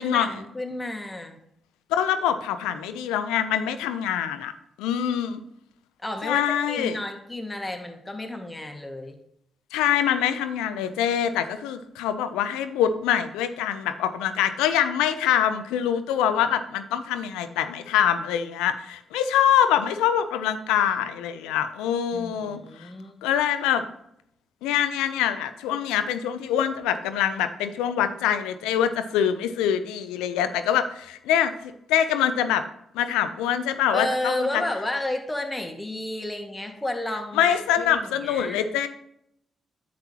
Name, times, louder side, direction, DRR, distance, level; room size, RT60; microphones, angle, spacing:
voice 1, 0.0-1.4 6.0-9.2 22.1-23.2 33.9-38.6, left 1 dB, 20° left, 4 dB, 1.8 m, -32 dB
voice 2, 1.9-4.5 4.8-5.4 6.2-7.0 9.7-22.9 23.2-23.8 24.6-31.5 31.9-32.6 32.9-34.6 37.3-38.9, left 9 dB, 80° left, 10 dB, 0.6 m, -24 dB
10.0 x 7.7 x 2.9 m, 0.74 s
hypercardioid pair, 40°, 0 cm